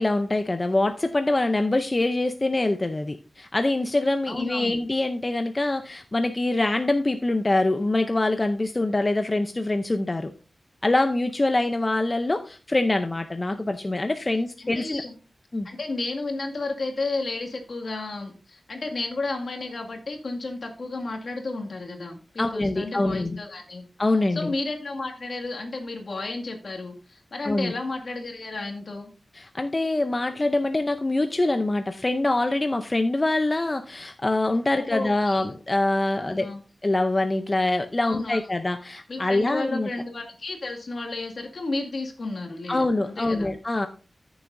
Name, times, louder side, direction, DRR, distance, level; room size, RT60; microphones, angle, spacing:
voice 1, 0.0-10.3 10.8-15.0 15.5-15.7 22.4-23.4 24.0-24.5 27.4-27.7 29.3-36.5 36.8-39.9 42.7-43.9, left 2 dB, 25° left, 7 dB, 0.6 m, -24 dB
voice 2, 4.3-4.8 14.6-15.1 15.6-23.8 24.3-29.1 34.7-35.5 36.2-36.6 38.0-38.4 39.1-43.5, left 3 dB, 60° left, 2 dB, 2.1 m, -32 dB
14.0 x 7.1 x 2.6 m, 0.35 s
wide cardioid pair, 110°, 0 cm